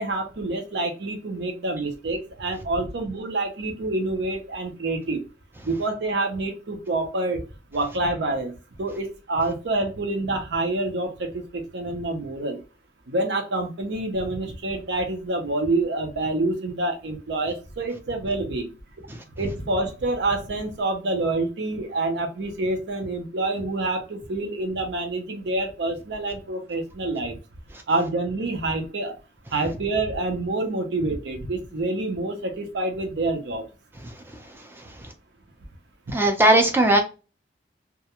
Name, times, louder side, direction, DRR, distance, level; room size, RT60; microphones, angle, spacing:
voice 1, 0.0-5.2 5.6-7.4 7.7-8.5 8.8-12.6 13.1-18.7 19.4-27.4 27.9-29.1 29.5-33.6, right 2 dB, 65° right, 0.6 m, -27 dB
voice 2, 36.1-37.0, right 1 dB, 10° right, 0.4 m, -17 dB
2.3 x 2.1 x 2.8 m
head